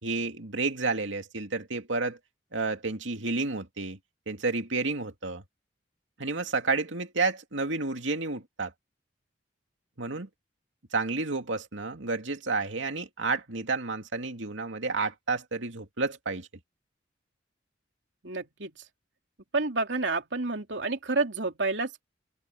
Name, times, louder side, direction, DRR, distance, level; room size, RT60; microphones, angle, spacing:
voice 1, 0.0-2.2 2.5-4.0 4.3-5.4 6.2-8.7 10.0-10.3 10.9-16.5, right 3 dB, 90° right, 2.5 m, -30 dB
voice 2, 18.2-18.7 19.5-22.0, right 3 dB, 70° right, 3.1 m, -29 dB
head